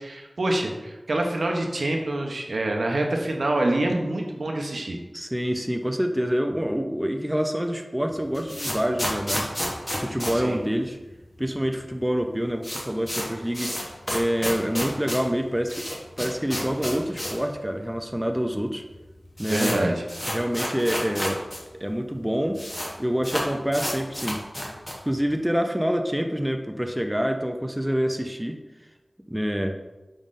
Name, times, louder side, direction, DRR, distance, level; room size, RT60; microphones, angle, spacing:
voice 1, 0.0-5.0 10.3-10.6 19.5-20.0, right 1 dB, 85° right, 1 dB, 0.6 m, -26 dB
voice 2, 5.1-9.5 10.0-11.0 11.4-13.7 14.1-15.9 16.2-18.8 19.4-19.9 20.3-21.4 21.8-22.6 23.0-24.4 25.1-28.6 29.3-29.7, equal, 10° right, 4 dB, 0.4 m, -26 dB
sound 1, 8.1-11.3 11.6-11.7 11.9-12.0 12.3-17.5 17.8-17.9 18.6-18.7 18.9-21.6 21.9-22.0 22.2-22.9 23.2-25.1, equal, 30° left, 0.9 m, -31 dB
5.2 x 3.6 x 2.5 m, 1.1 s
wide cardioid pair, 70°, 0 cm